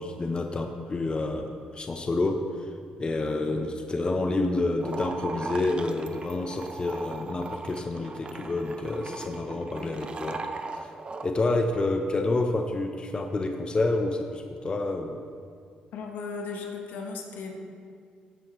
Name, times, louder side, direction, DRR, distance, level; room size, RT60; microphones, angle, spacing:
voice 1, 0.0-2.7 3.0-10.4 10.7-10.9 11.2-15.2, left 2 dB, 30° left, 4 dB, 0.8 m, -28 dB
sound 1, 4.8-11.3, right 3 dB, 35° right, 0.6 m, -38 dB
voice 2, 15.9-17.5, left 4 dB, 75° left, 2 dB, 1.2 m, -36 dB
13.5 x 7.8 x 3.1 m, 2.2 s
supercardioid pair, 70°, 3 cm